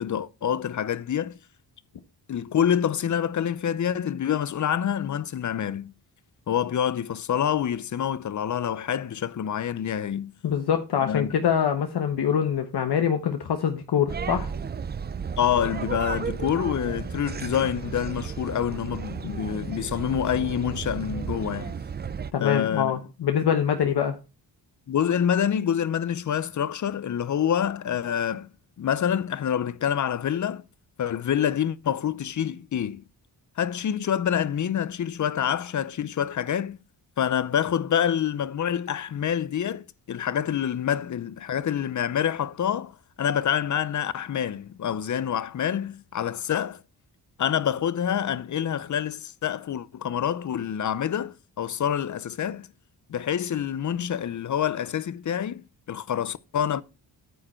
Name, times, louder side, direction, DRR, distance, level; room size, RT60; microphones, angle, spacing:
voice 1, 0.0-1.4 2.3-5.9 6.5-10.3 11.0-11.3 15.4-21.8 22.4-23.0 24.9-28.5 28.8-30.6 31.0-33.0 33.6-36.8 37.2-46.8 47.4-52.7 53.1-56.8, left 9 dB, 50° left, 0.6 m, -27 dB
voice 2, 10.4-14.5 22.3-24.1, left 8 dB, 75° left, 1.1 m, -24 dB
sound 1, 14.1-22.3, right 6 dB, 25° right, 0.4 m, -33 dB
9.2 x 6.6 x 4.3 m
cardioid pair, 90°, 40 cm